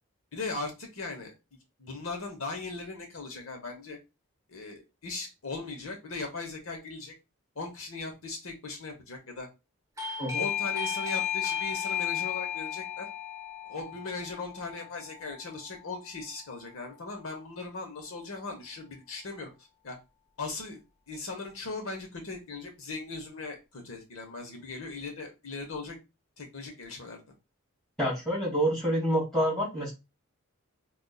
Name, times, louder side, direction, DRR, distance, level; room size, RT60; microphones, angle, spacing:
voice 1, 0.3-1.3 1.8-4.0 4.5-7.1 7.5-9.5 10.3-13.1 13.7-20.0 20.4-20.8 21.1-26.0 26.4-27.2, left 3 dB, 70° left, 2 dB, 0.9 m, -39 dB
Doorbell, 10.0-16.4, left 10 dB, 15° right, 0.5 m, -34 dB
voice 2, 28.0-29.9, equal, ahead, -5 dB, 2.2 m, -27 dB
5.1 x 2.4 x 2.3 m, 0.26 s
head